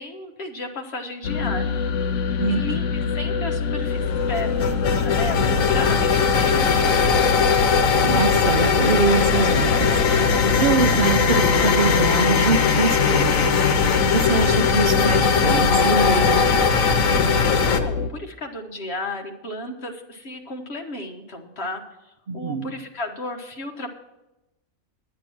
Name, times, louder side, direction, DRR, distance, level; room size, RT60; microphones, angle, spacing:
voice 1, 0.0-1.7 2.5-7.3 17.8-23.9, left 2 dB, 55° left, 3 dB, 1.5 m, -34 dB
sound 1, 1.2-18.1, left 5 dB, 70° left, 0.9 m, -25 dB
voice 2, 2.4-2.8 8.0-13.8 14.1-16.8 22.3-22.7, right 5 dB, 45° right, 7 dB, 0.9 m, -24 dB
sound 2, 3.8-17.8, left 5 dB, 90° left, 1.3 m, -20 dB
9.8 x 9.4 x 6.1 m, 0.96 s
omnidirectional pair, 1.4 m